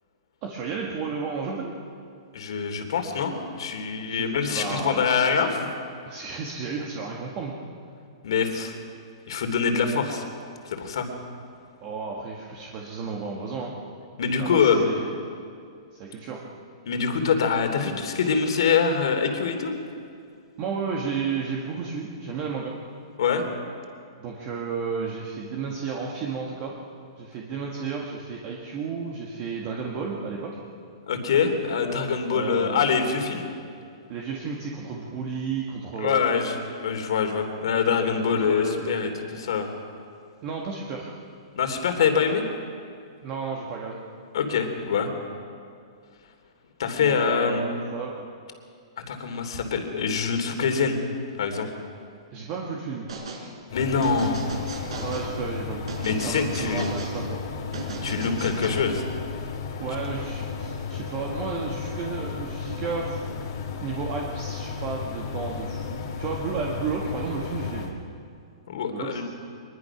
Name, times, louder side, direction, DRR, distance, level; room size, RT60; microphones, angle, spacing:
voice 1, 0.4-1.7 4.1-5.1 6.1-7.6 11.8-13.7 14.4-15.2 15.9-16.5 20.6-22.7 24.2-26.7 27.2-30.6 32.3-32.8 34.1-36.3 38.3-39.1 40.4-41.1 43.2-44.0 47.0-48.3 52.3-53.1 55.0-55.9 56.2-57.4 59.8-63.2 63.8-67.9 68.9-69.2, right 5 dB, 25° right, -1 dB, 1.8 m, -32 dB
voice 2, 2.3-5.8 8.2-8.7 9.3-10.2 10.6-11.1 14.2-14.9 16.8-19.7 23.2-23.4 31.1-33.5 36.0-39.7 41.5-42.4 44.3-45.1 46.8-47.9 49.1-51.0 51.4-51.7 53.7-54.4 56.0-56.9 58.0-59.0 68.7-69.2, left 6 dB, 60° left, 5 dB, 3.2 m, -24 dB
sound 1, 53.1-53.4 54.0-55.3 55.9-57.1 57.7-58.7, right 4 dB, 75° right, 5.2 m, -36 dB
sound 2, 53.7-67.9, left 5 dB, 45° left, 2.3 m, -34 dB
24.0 x 21.0 x 6.0 m, 2.3 s
hypercardioid pair, 175°, 3 cm